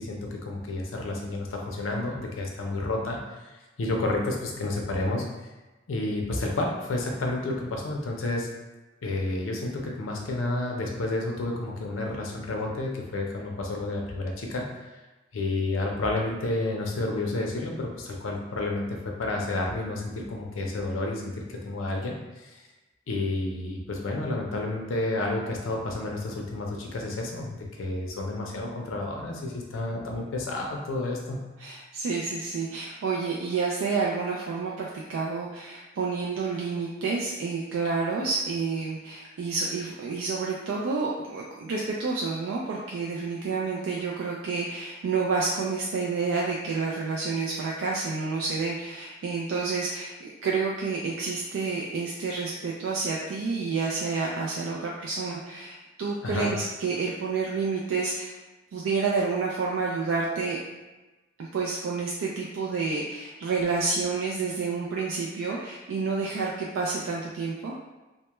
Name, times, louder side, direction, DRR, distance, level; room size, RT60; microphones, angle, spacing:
voice 1, 0.0-3.5 3.8-5.3 5.9-8.5 9.0-14.7 15.3-22.1 22.4-22.6 23.1-31.4 56.2-56.6, left 2 dB, 85° left, 0 dB, 0.5 m, -30 dB
voice 2, 31.6-58.3 58.7-60.6 61.4-67.7, right 4 dB, 90° right, -3 dB, 0.3 m, -29 dB
2.2 x 2.1 x 2.9 m, 1.1 s
head